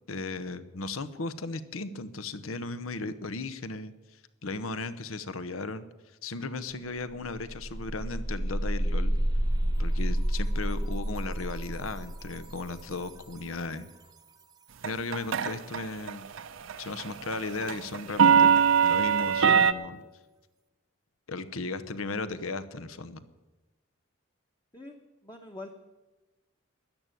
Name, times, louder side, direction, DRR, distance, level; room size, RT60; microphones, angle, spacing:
voice 1, 0.1-5.9 6.2-9.1 9.8-13.9 14.8-16.3 16.8-18.6 18.8-20.0 21.3-23.2, left 3 dB, 85° left, 14 dB, 0.9 m, -36 dB
sound 1, 6.7-6.8 7.1-13.9, equal, 20° right, 0.8 m, -30 dB
sound 2, 14.8-15.8 16.1-16.4 16.7-19.7, right 7 dB, 70° right, 0.6 m, -21 dB
voice 2, 24.7-25.8, left 2 dB, 20° left, 2 dB, 1.0 m, -45 dB
13.0 x 10.5 x 9.1 m, 1.2 s
head